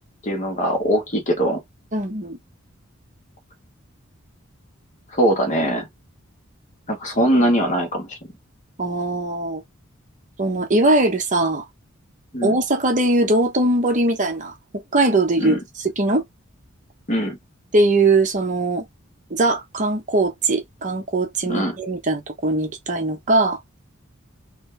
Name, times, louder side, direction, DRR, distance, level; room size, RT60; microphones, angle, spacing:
voice 1, 0.2-1.6 5.1-5.9 6.9-8.2 12.3-12.6 15.4-15.6 17.1-17.4 21.5-21.8, equal, 35° left, 1.5 m, -21 dB
voice 2, 1.9-2.4 8.8-9.6 10.4-11.6 12.4-16.2 17.7-18.8 19.3-23.6, right 2 dB, 40° right, 1.0 m, -20 dB
3.2 x 3.1 x 3.3 m
head